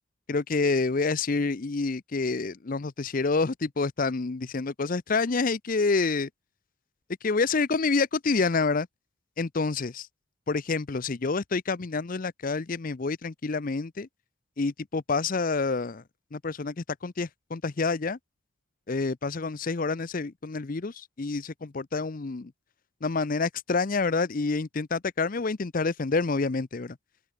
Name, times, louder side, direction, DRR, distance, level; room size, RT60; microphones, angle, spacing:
voice 1, 0.3-6.3 7.2-8.9 9.4-10.1 10.5-14.1 14.6-16.0 16.3-18.2 18.9-22.5 23.0-27.0, left 4 dB, 40° left, 0.6 m, -28 dB
open air
head